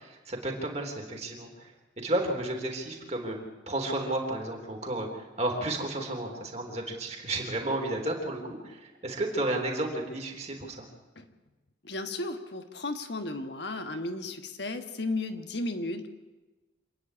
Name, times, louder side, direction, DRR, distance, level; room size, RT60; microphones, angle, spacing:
voice 1, 0.0-10.9, right 1 dB, 35° right, 1 dB, 3.6 m, -32 dB
voice 2, 11.8-16.1, left 2 dB, 60° left, 7 dB, 1.5 m, -34 dB
27.0 x 9.9 x 9.8 m, 1.2 s
head